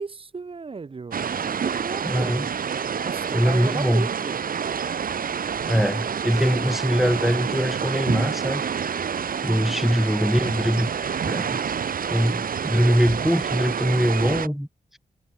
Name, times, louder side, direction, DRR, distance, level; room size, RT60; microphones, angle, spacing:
voice 1, 0.0-2.3 3.0-4.4, right 4 dB, 40° right, 3.3 m, -34 dB
sound 1, 1.1-14.5, right 7 dB, 80° right, 3.6 m, -28 dB
voice 2, 2.0-2.5 3.3-4.1 5.7-8.7 9.4-10.9 11.2-11.6 12.1-14.7, equal, ahead, 1.0 m, -22 dB
wide cardioid pair, 175°, 15 cm